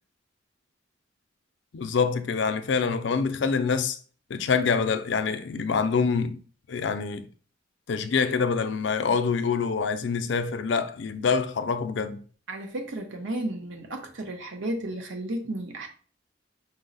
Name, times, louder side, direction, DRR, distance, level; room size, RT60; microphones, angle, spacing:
voice 1, 1.7-4.0 4.3-6.4 6.7-7.3 7.9-12.2, left 5 dB, 70° left, 0.4 m, -26 dB
voice 2, 12.5-15.9, right 1 dB, 80° right, 0.8 m, -33 dB
5.4 x 2.1 x 3.9 m
head